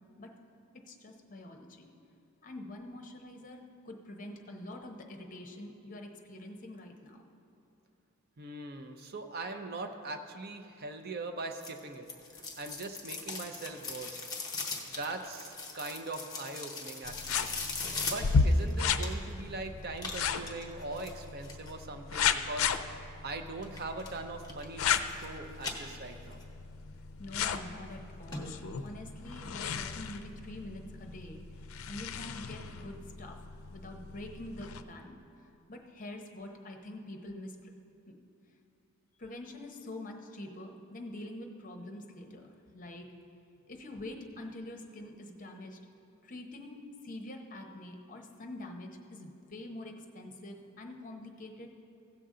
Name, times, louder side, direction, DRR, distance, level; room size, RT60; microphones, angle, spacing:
voice 1, 0.9-1.9 2.4-7.2 27.2-31.4 31.9-33.4 33.7-35.2 35.7-37.7 38.1-38.2 39.2-43.1 43.7-45.8 46.2-51.7, left 1 dB, 40° left, 3 dB, 0.8 m, -45 dB
voice 2, 8.4-12.1 12.3-14.3 14.9-17.5 18.0-22.8 23.2-26.4, right 2 dB, 45° right, 6 dB, 0.6 m, -41 dB
sound 1, 11.6-19.4 20.0-21.7 23.6-24.1 24.4-25.3 25.6-26.4 26.8-26.9 27.5-27.6 27.9-28.0 28.3-28.4 28.8-28.9, left 4 dB, 20° left, 1.0 m, -40 dB
sound 2, 17.1-34.8, left 5 dB, 75° left, 0.4 m, -35 dB
16.0 x 6.8 x 3.8 m, 2.7 s
head